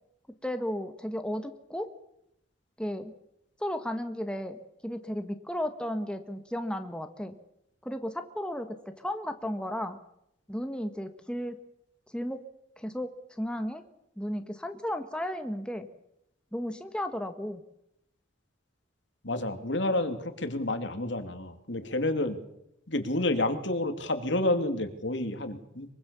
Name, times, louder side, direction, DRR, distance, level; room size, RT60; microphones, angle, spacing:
voice 1, 0.4-1.9 2.8-3.1 3.6-7.4 7.8-10.0 10.5-11.6 12.1-12.4 12.8-13.8 14.2-15.9 16.5-17.6, equal, 5° left, 7 dB, 1.4 m, -34 dB
voice 2, 19.2-22.4 22.9-26.0, left 1 dB, 65° left, 8 dB, 2.7 m, -29 dB
24.0 x 24.0 x 7.0 m, 0.80 s
head